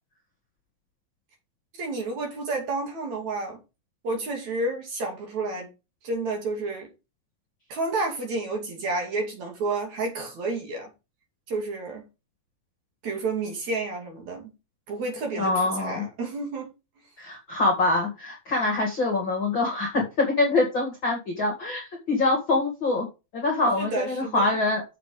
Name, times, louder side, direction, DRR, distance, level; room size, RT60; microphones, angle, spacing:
voice 1, 1.8-3.6 4.0-5.7 6.0-6.9 7.7-10.9 11.5-12.0 13.0-14.5 14.9-16.7 23.8-24.5, right 3 dB, 50° right, 3.7 m, -30 dB
voice 2, 15.4-16.0 17.2-23.1 23.3-24.8, left 2 dB, 40° left, 2.1 m, -24 dB
7.5 x 6.8 x 5.0 m
omnidirectional pair, 4.4 m